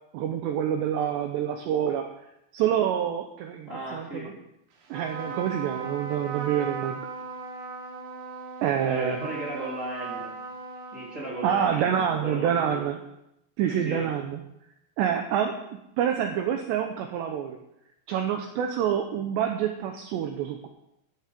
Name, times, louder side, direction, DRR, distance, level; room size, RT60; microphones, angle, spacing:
voice 1, 0.1-2.1 2.5-4.3 4.9-7.0 8.6-9.2 11.4-13.0 13.6-14.4 15.0-15.6 16.0-17.6 18.1-20.7, right 9 dB, 85° right, 5 dB, 2.5 m, -27 dB
voice 2, 3.7-4.3 8.7-10.3 10.9-12.9 13.8-14.1, right 1 dB, 20° right, -5 dB, 2.5 m, -35 dB
Trumpet, 4.9-11.7, right 4 dB, 65° right, 4.1 m, -38 dB
14.0 x 9.7 x 5.1 m, 0.83 s
omnidirectional pair, 6.0 m